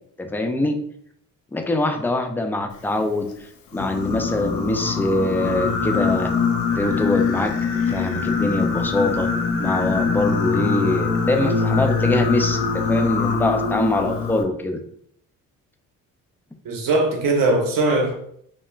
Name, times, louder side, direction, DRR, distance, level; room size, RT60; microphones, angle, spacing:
voice 1, 0.2-0.8 1.5-3.5 3.7-6.3 6.8-7.5 7.8-9.3 9.6-14.8, left 2 dB, 5° left, 0.3 m, -23 dB
Singing, 3.7-14.4, left 5 dB, 60° left, 0.6 m, -23 dB
voice 2, 16.6-18.1, right 2 dB, 55° right, 0.8 m, -20 dB
2.4 x 2.1 x 3.1 m
supercardioid pair, 60°, 39 cm